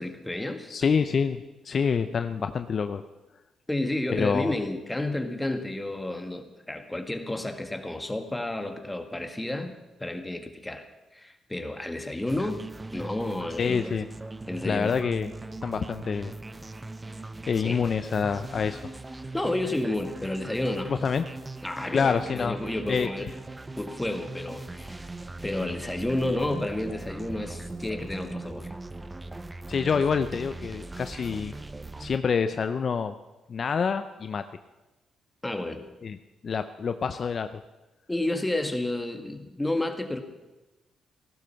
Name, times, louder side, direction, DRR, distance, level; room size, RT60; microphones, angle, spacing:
voice 1, 0.0-0.7 3.7-9.7 10.0-10.9 11.1-12.6 12.9-13.9 14.5-15.0 17.6-17.8 19.3-20.9 21.6-23.3 23.8-25.1 25.4-28.7 35.4-35.8 38.1-40.2, left 1 dB, 10° left, 6 dB, 1.8 m, -31 dB
voice 2, 0.7-1.4 1.6-3.0 4.1-4.5 13.6-14.1 14.6-15.3 15.6-16.3 17.5-18.8 20.9-21.2 21.9-22.6 22.9-23.1 29.7-31.5 32.0-33.2 33.5-34.4 36.0-36.2 36.4-37.5, left 6 dB, 50° left, 9 dB, 0.6 m, -26 dB
sound 1, 12.3-32.2, right 2 dB, 20° right, 0.6 m, -40 dB
15.5 x 12.0 x 5.8 m, 1.1 s
cardioid pair, 75°, 0 cm